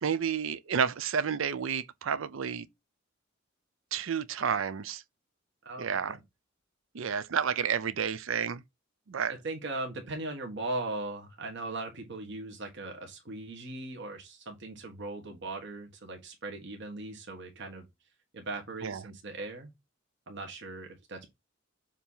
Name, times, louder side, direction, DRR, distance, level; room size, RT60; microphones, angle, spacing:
voice 1, 0.0-2.7 3.9-5.0 5.8-6.2 6.9-8.6 9.1-9.3 18.8-19.0, right 7 dB, 75° right, 0.5 m, -30 dB
voice 2, 5.6-6.2 9.3-17.9 18.3-19.7 20.3-21.3, right 2 dB, 60° right, 1.4 m, -39 dB
7.3 x 2.8 x 5.5 m
head